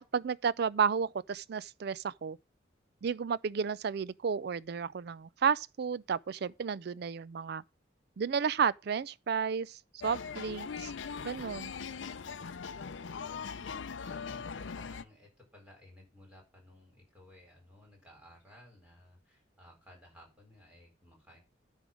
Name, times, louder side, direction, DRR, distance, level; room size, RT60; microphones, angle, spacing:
voice 1, 0.0-2.4 3.0-7.6 8.2-10.9 11.2-11.7, right 6 dB, 55° right, 0.4 m, -32 dB
sound 1, 10.0-15.0, left 6 dB, 75° left, 0.5 m, -40 dB
voice 2, 13.2-21.4, left 1 dB, 5° right, 4.3 m, -57 dB
9.9 x 3.6 x 7.2 m
head